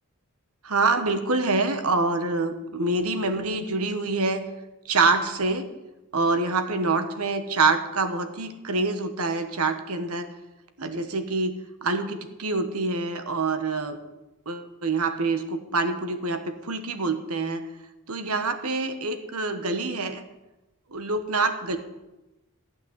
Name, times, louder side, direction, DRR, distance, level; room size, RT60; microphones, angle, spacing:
voice 1, 0.6-4.4 4.8-5.7 6.1-10.3 10.8-11.5 11.8-14.0 14.5-17.6 18.1-20.2 20.9-21.8, right 3 dB, 75° right, 8 dB, 1.3 m, -26 dB
14.5 x 6.0 x 9.8 m, 1.0 s
head